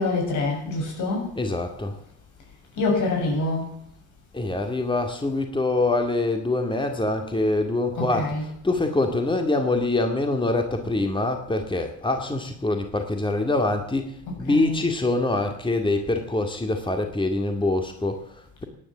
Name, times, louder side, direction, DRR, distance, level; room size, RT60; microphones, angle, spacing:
voice 1, 0.0-1.3 2.7-3.8 8.0-8.5 14.4-14.9, left 2 dB, 80° left, 0 dB, 7.5 m, -26 dB
voice 2, 1.4-2.0 4.3-18.6, left 2 dB, 15° left, 5 dB, 2.2 m, -25 dB
17.0 x 10.0 x 7.3 m, 0.69 s
cardioid pair, 90°, 30 cm